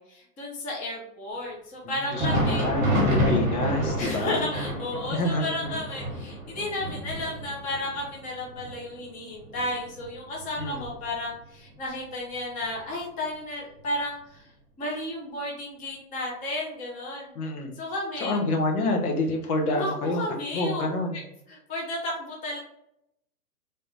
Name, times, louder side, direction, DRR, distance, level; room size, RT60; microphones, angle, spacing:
voice 1, 0.0-2.7 4.0-14.5 14.8-17.3 17.8-18.4 19.7-20.8 21.1-21.2 21.5-22.6, left 1 dB, 15° left, -3 dB, 0.9 m, -33 dB
voice 2, 1.8-4.4 5.1-5.7 10.6-10.8 17.3-17.8 18.2-20.2 20.5-21.2, left 2 dB, 65° left, 3 dB, 1.1 m, -28 dB
Thunder, 2.0-11.4 11.7-11.9 12.6-12.8 13.8-13.9, equal, 15° right, 1.1 m, -29 dB
3.6 x 2.8 x 4.0 m, 0.77 s
hypercardioid pair, 140°, 47 cm